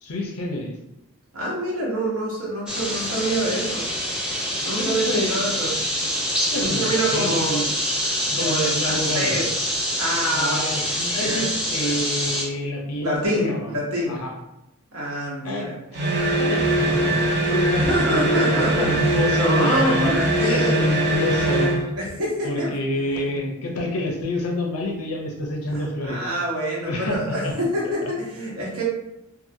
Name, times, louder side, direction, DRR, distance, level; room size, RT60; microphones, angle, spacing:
voice 1, 0.0-0.7 4.8-5.6 6.5-7.7 8.3-9.4 10.3-13.7 14.1-14.3 15.4-15.7 16.4-20.1 20.4-21.8 22.4-26.2 26.8-27.5, left 1 dB, 90° left, 1 dB, 0.6 m, -28 dB
voice 2, 1.3-3.9 4.6-5.7 6.6-7.5 8.4-9.5 10.0-10.6 11.2-11.4 11.8-11.9 13.0-14.2 14.9-15.7 17.7-18.9 19.3-20.8 22.0-23.3 25.7-28.8, right 1 dB, 85° right, -4 dB, 1.0 m, -26 dB
sound 1, 2.7-12.4, equal, 5° right, 0.6 m, -25 dB
sound 2, 15.9-21.9, right 1 dB, 50° right, 0.5 m, -21 dB
2.7 x 2.5 x 2.6 m, 0.87 s
head